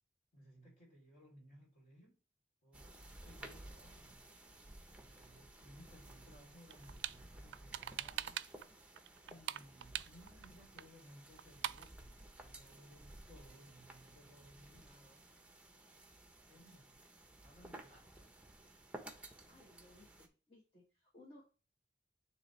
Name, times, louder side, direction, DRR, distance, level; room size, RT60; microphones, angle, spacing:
voice 1, 0.3-2.2 2.6-4.2 4.9-8.8 9.3-15.3 16.4-17.0 17.4-18.2, equal, 50° left, 3.3 m, -61 dB
sound 1, 2.7-20.3, right 1 dB, 5° right, 0.8 m, -56 dB
sound 2, 6.7-7.2 7.5-8.7 8.9-10.5 10.8-10.9 11.1-11.2 11.4-11.9, right 12 dB, 80° right, 0.3 m, -42 dB
voice 2, 19.5-21.4, left 1 dB, 30° left, 1.5 m, -61 dB
9.9 x 3.3 x 3.2 m
head